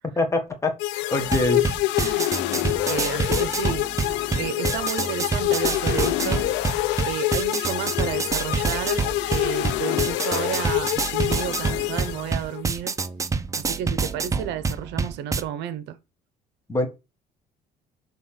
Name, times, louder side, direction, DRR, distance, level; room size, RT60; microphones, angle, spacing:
voice 1, 0.2-0.7 1.1-1.6 16.7-16.9, left 2 dB, 15° left, 1.5 m, -23 dB
sound 1, 0.8-12.6, left 16 dB, 90° left, 0.5 m, -26 dB
sound 2, 1.2-15.4, right 4 dB, 15° right, 0.5 m, -27 dB
voice 2, 2.8-3.8 4.4-6.5 7.1-12.9 13.6-16.0, right 10 dB, 75° right, 0.7 m, -31 dB
6.6 x 3.5 x 5.7 m
cardioid pair, 140°, 18 cm